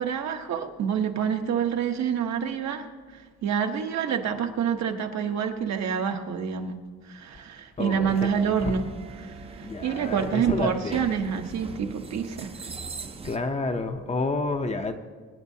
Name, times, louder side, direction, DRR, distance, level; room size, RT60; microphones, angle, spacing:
voice 1, 0.0-2.9 3.1-6.8 7.1-8.9 9.2-12.7, right 7 dB, 65° right, 5 dB, 1.1 m, -27 dB
voice 2, 7.8-8.1 8.6-8.7 9.6-11.1 13.2-15.0, left 3 dB, 20° left, 6 dB, 0.6 m, -29 dB
sound 1, 8.1-13.4, right 4 dB, 20° right, 0.5 m, -41 dB
24.0 x 10.0 x 2.8 m, 1.5 s
cardioid pair, 150°, 30 cm